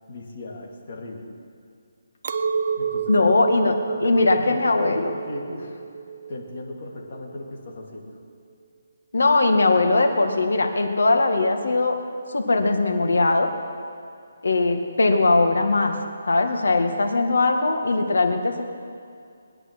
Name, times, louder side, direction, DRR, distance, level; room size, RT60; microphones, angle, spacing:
voice 1, 0.1-1.3 2.8-3.3 3.9-5.8 6.3-8.1, left 2 dB, 40° left, -1 dB, 2.4 m, -37 dB
Chink clink, 2.2-7.6, right 6 dB, 40° right, 0.6 m, -30 dB
voice 2, 3.1-3.8 4.0-5.1 9.1-11.9 12.3-13.5 14.4-15.9 16.3-18.6, left 3 dB, 85° left, 4 dB, 2.0 m, -20 dB
20.5 x 10.0 x 6.3 m, 2.4 s
hypercardioid pair, 175°, 0 cm